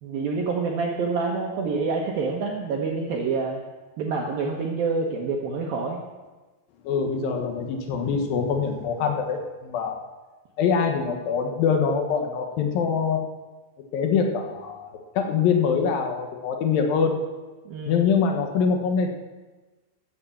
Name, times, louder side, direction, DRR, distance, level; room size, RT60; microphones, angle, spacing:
voice 1, 0.0-3.6 4.0-6.0 17.7-18.0, right 4 dB, 85° right, -1 dB, 2.0 m, -27 dB
voice 2, 6.8-10.0 10.6-13.2 13.9-17.2 17.9-19.1, left 6 dB, 70° left, 3 dB, 2.2 m, -24 dB
14.5 x 7.6 x 7.2 m, 1.2 s
omnidirectional pair, 6.0 m